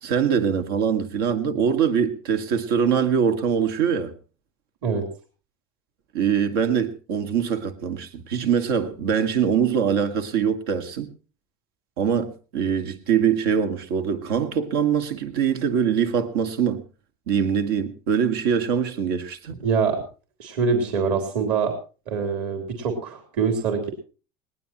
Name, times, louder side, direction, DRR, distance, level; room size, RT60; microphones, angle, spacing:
voice 1, 0.0-4.1 6.1-11.1 12.0-16.8 17.3-19.6, right 7 dB, 90° right, 2.1 m, -23 dB
voice 2, 19.6-20.0 20.4-21.7 22.1-23.9, right 5 dB, 55° right, 3.7 m, -24 dB
20.5 x 19.0 x 3.0 m
cardioid pair, 165°, 12 cm